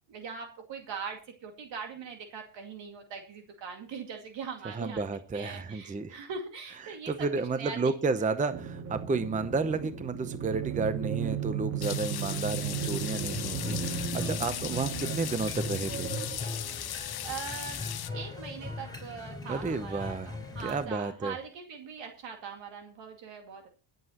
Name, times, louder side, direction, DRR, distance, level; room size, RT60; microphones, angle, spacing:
voice 1, 0.1-5.0 5.3-7.3 7.5-7.8 14.4-15.1 17.2-17.8 18.1-23.7, right 6 dB, 65° right, 3 dB, 2.4 m, -41 dB
voice 2, 4.6-6.2 6.8-16.2 19.5-20.3 20.6-21.4, right 4 dB, 15° right, 11 dB, 0.7 m, -32 dB
sound 1, 8.5-17.2, right 8 dB, 30° right, 1.7 m, -35 dB
sound 2, 11.8-18.1, left 11 dB, 50° left, 1.1 m, -37 dB
sound 3, 12.7-20.8, left 3 dB, 10° left, 3.6 m, -40 dB
24.0 x 8.0 x 3.0 m, 0.34 s
cardioid pair, 115°, 48 cm